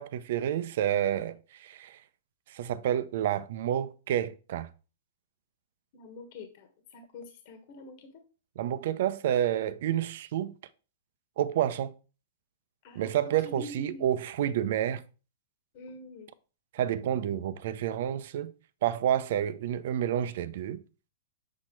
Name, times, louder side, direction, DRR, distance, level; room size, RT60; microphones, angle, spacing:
voice 1, 0.0-2.0 2.5-4.7 8.6-10.5 11.4-11.9 12.9-15.0 16.7-18.5 18.8-20.8, right 10 dB, 60° right, 0.7 m, -29 dB
voice 2, 5.9-8.2 12.8-14.1 15.7-16.3, left 2 dB, 50° left, 1.5 m, -46 dB
7.2 x 4.5 x 4.7 m
hypercardioid pair, 135°, 0 cm